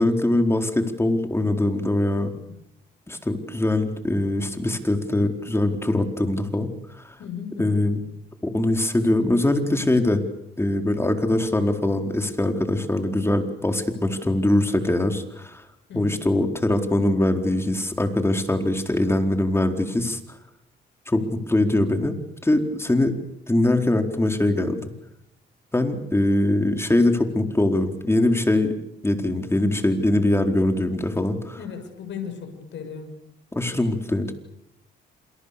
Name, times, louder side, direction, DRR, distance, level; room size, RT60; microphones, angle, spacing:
voice 1, 0.0-2.3 3.1-6.7 7.0-7.1 7.6-8.0 8.4-10.2 10.6-15.6 15.9-20.2 21.1-22.1 22.4-23.1 23.5-24.8 25.7-28.7 29.0-31.6 33.5-34.3, left 1 dB, 10° left, 5 dB, 4.3 m, -22 dB
voice 2, 7.2-7.8 15.9-16.2 31.6-33.1, left 7 dB, 70° left, 4 dB, 7.1 m, -35 dB
28.5 x 27.5 x 6.9 m, 0.82 s
cardioid pair, 90°, 20 cm